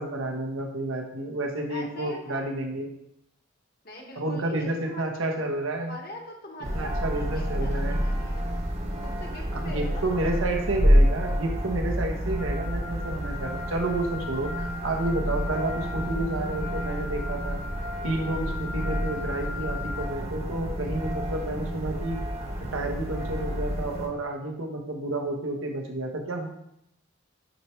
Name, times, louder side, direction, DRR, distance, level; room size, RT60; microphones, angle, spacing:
voice 1, 0.0-2.9 4.2-6.0 6.7-8.0 9.5-17.6 18.0-22.2 22.7-26.5, right 2 dB, 90° right, 2 dB, 1.1 m, -30 dB
voice 2, 1.7-2.4 3.8-5.1 5.9-8.6 9.0-10.4, left 1 dB, 50° left, 0 dB, 1.3 m, -43 dB
sound 1, 6.6-24.1, equal, 30° right, 1.0 m, -28 dB
Wind instrument woodwind instrument, 12.4-20.2, left 5 dB, 65° left, 0.7 m, -39 dB
9.3 x 4.6 x 3.2 m, 0.78 s
head